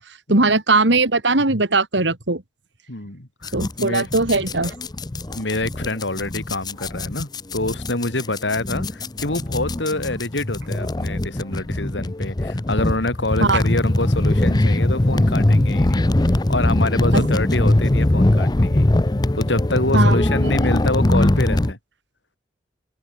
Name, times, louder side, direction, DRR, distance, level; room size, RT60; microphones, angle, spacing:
voice 1, 0.3-2.4 3.5-4.7 13.4-13.6 17.1-17.3 19.9-20.1, right 3 dB, 80° right, 2.8 m, -19 dB
voice 2, 2.9-4.1 5.4-16.0 16.5-18.9 19.3-21.8, left 2 dB, 80° left, 3.7 m, -26 dB
sound 1, 3.4-21.7, left 1 dB, 25° left, 0.6 m, -21 dB
head